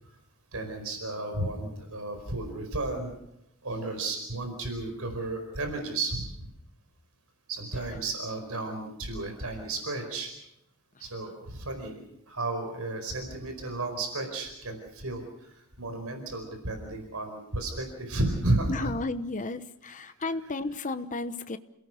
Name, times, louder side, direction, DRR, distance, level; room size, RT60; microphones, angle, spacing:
voice 1, 0.5-3.1 3.6-6.5 7.5-10.3 11.0-18.9, right 2 dB, 75° right, 5 dB, 4.7 m, -33 dB
voice 2, 18.7-21.6, left 2 dB, 35° left, 11 dB, 1.0 m, -33 dB
28.5 x 18.0 x 6.5 m, 0.83 s
head